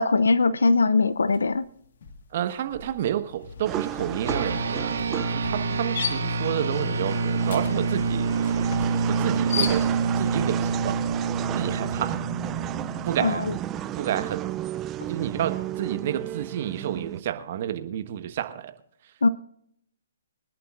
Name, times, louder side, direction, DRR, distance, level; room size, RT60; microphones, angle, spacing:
voice 1, 0.0-1.6 13.2-13.5 19.2-19.3, left 3 dB, 80° left, 0.5 m, -21 dB
Classroom Deskchair Walk up Slide and Sit, 1.3-1.6 1.9-10.3, left 6 dB, 60° left, 1.6 m, -36 dB
voice 2, 2.3-8.3 9.1-11.0 11.5-12.2 13.0-13.5 14.0-14.5 15.1-18.7, right 11 dB, 50° right, 1.3 m, -30 dB
sound 1, 3.6-17.2, right 13 dB, 20° right, 0.4 m, -34 dB
sound 2, 4.3-14.0, right 4 dB, 70° right, 1.9 m, -27 dB
24.0 x 11.0 x 2.5 m
hypercardioid pair, 135°, 0 cm